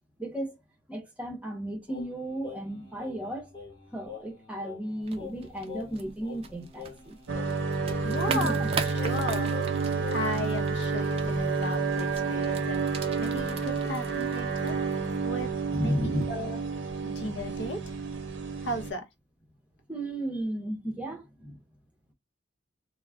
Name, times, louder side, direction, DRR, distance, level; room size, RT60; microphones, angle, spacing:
voice 1, 0.2-0.6 0.9-3.5 3.9-7.2 8.3-8.7 15.7-16.2 19.9-21.6, right 1 dB, 5° right, 0.7 m, -34 dB
Singing, 1.9-10.5, left 8 dB, 25° left, 1.0 m, -45 dB
sound 1, 5.0-15.3, right 5 dB, 30° right, 0.4 m, -41 dB
sound 2, 7.3-18.9, right 4 dB, 70° right, 0.6 m, -30 dB
voice 2, 8.0-8.6 9.0-9.5 10.1-12.9 13.2-14.8 15.2-15.5 15.8-16.6 17.0-17.8 18.6-19.0, left 1 dB, 60° left, 0.7 m, -35 dB
2.3 x 2.0 x 3.3 m
head